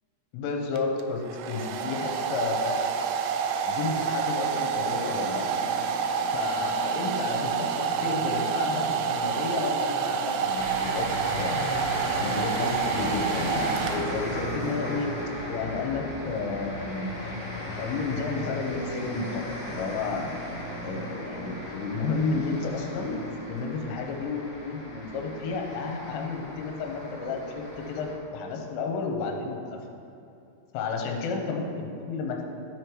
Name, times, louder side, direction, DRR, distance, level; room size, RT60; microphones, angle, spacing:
voice 1, 0.3-2.8 3.6-5.4 6.3-11.1 11.4-11.7 12.2-15.1 15.5-17.1 17.8-20.3 20.8-23.2 23.5-28.1 28.3-29.8 30.7-32.4, left 4 dB, 85° left, 2 dB, 3.4 m, -31 dB
Domestic sounds home sounds, 0.8-14.5, right 6 dB, 85° right, 2.5 m, -28 dB
sound 1, 4.3-16.8 18.7-23.2, right 1 dB, 60° right, 4.1 m, -40 dB
sound 2, 10.5-28.1, left 1 dB, 45° left, 2.4 m, -37 dB
12.5 x 5.0 x 4.6 m, 2.6 s
omnidirectional pair, 5.7 m